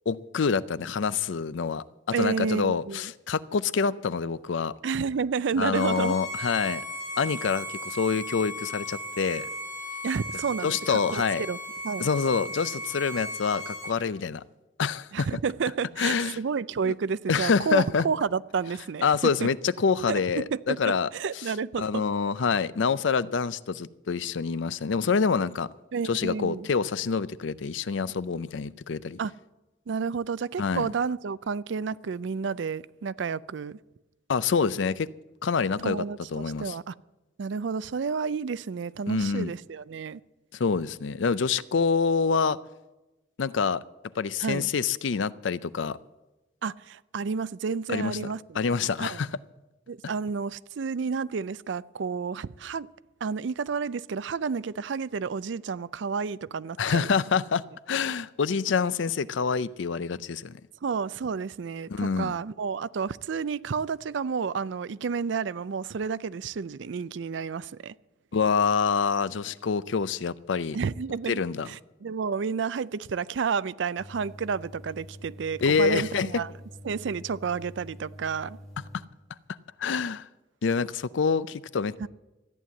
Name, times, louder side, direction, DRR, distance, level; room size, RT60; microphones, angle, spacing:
voice 1, 0.1-1.8 2.2-4.7 5.6-6.8 7.2-9.5 10.6-11.5 12.0-14.4 14.8-15.3 16.0-16.4 16.8-16.9 17.3-18.1 19.0-21.1 21.8-25.7 26.0-29.2 30.6-30.9 34.3-35.1 35.4-36.0 36.3-36.7 39.1-39.5 40.5-42.6 43.4-43.8 44.2-46.0 47.9-48.2 48.5-49.3 56.8-60.6 61.9-62.3 68.3-70.8 71.3-71.7 75.6-76.3 79.8-80.3 80.6-82.1, left 5 dB, 75° left, 0.5 m, -26 dB
voice 2, 2.1-3.1 4.8-6.2 10.0-11.6 11.8-12.1 15.1-19.1 19.4-19.5 20.1-22.0 25.9-26.7 29.2-29.3 29.9-33.8 35.8-36.9 37.4-40.2 44.4-44.7 46.6-48.6 49.0-49.2 49.9-52.9 53.2-57.1 60.8-67.9 70.7-71.4 71.7-76.5 76.8-78.6 82.0-82.1, right 5 dB, 70° right, 0.4 m, -30 dB
Bowed string instrument, 5.7-14.0, equal, 40° left, 2.8 m, -37 dB
sound 1, 74.0-79.0, equal, ahead, 2.9 m, -46 dB
14.0 x 9.3 x 8.3 m
head